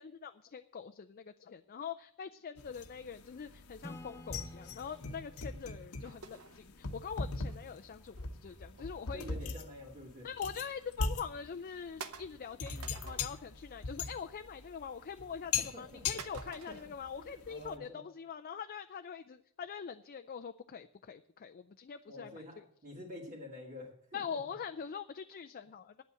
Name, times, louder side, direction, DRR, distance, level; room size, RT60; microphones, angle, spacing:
voice 1, 0.0-9.2 10.2-22.6 24.1-26.0, left 6 dB, 40° left, 8 dB, 0.4 m, -44 dB
sound 1, 2.6-17.8, left 4 dB, 80° left, 1.0 m, -41 dB
Acoustic guitar / Strum, 3.8-7.4, left 1 dB, 15° left, 0.9 m, -53 dB
sound 2, 6.0-7.6 8.2-9.5 9.8-10.1 10.6-10.7 11.2-11.3 12.0-13.5 13.8-14.2 14.5-15.2 16.2-16.9, right 5 dB, 75° right, 0.8 m, -50 dB
voice 2, 8.8-10.3 15.6-16.2 16.7-16.8 17.3-18.0 22.1-24.6, left 1 dB, 45° right, -5 dB, 2.3 m, -49 dB
9.5 x 8.2 x 7.6 m, 0.66 s
head